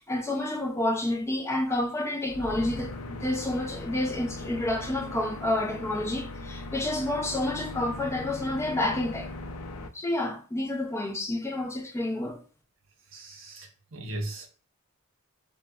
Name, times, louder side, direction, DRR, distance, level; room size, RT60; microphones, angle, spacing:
voice 1, 0.0-9.3 9.9-12.4, left 1 dB, 10° left, 0.4 m, -29 dB
sound 1, 2.3-9.9, left 2 dB, 85° left, 0.4 m, -39 dB
voice 2, 13.1-14.5, right 1 dB, 65° right, 0.8 m, -38 dB
4.0 x 2.0 x 2.2 m
head